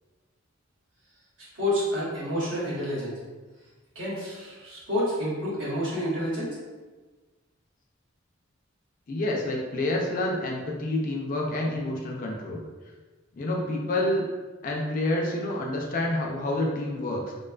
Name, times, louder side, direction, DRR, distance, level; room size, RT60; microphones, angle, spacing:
voice 1, 1.5-3.2 3.9-6.6, equal, 70° right, -7 dB, 0.9 m, -29 dB
voice 2, 9.1-12.6 13.3-14.2 14.6-17.3, left 1 dB, 40° left, -1 dB, 0.4 m, -28 dB
2.4 x 2.2 x 2.3 m, 1.3 s
head